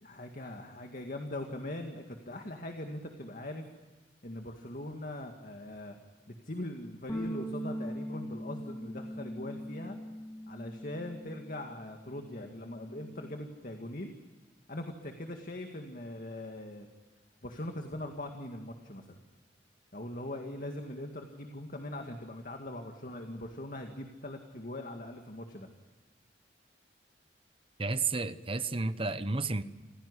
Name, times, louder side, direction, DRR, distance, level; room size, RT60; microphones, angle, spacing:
voice 1, 0.0-3.6 4.2-6.0 6.3-10.0 10.5-14.1 14.7-16.9 17.4-19.2 19.9-25.7, left 1 dB, 50° left, 2.1 m, -41 dB
sound 1, 7.1-11.6 11.9-13.3, equal, 15° left, 2.9 m, -41 dB
voice 2, 27.8-29.6, right 3 dB, 30° right, 1.0 m, -31 dB
27.5 x 16.5 x 9.8 m
head